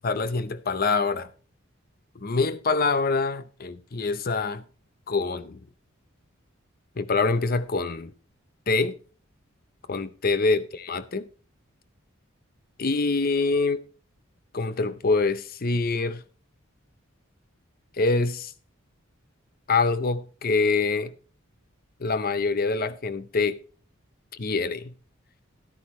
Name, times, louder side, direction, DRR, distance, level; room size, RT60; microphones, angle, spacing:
voice 1, 0.0-1.3 2.2-4.6 5.1-5.6 7.0-8.1 8.7-9.0 9.9-11.3 12.8-13.8 14.5-16.2 18.0-18.5 19.7-21.1 22.0-23.6 24.3-24.9, left 3 dB, 45° left, 0.7 m, -25 dB
11.0 x 10.0 x 3.1 m
head